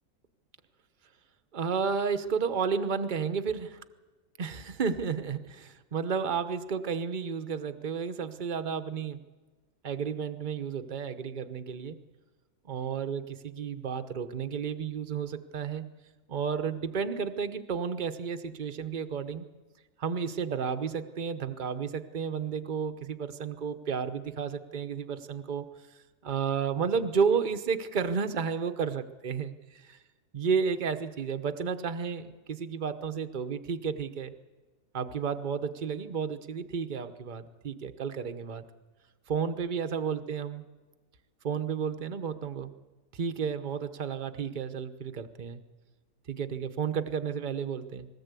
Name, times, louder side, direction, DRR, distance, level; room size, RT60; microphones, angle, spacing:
voice 1, 1.5-3.8 4.4-9.2 9.8-12.0 12.7-15.9 16.3-19.5 20.0-25.7 26.2-30.0 30.3-34.3 34.9-38.6 39.3-40.6 41.4-42.7 43.1-45.6 46.3-48.1, right 6 dB, 40° right, 9 dB, 1.0 m, -32 dB
20.5 x 17.5 x 8.3 m, 1.3 s
omnidirectional pair, 1.4 m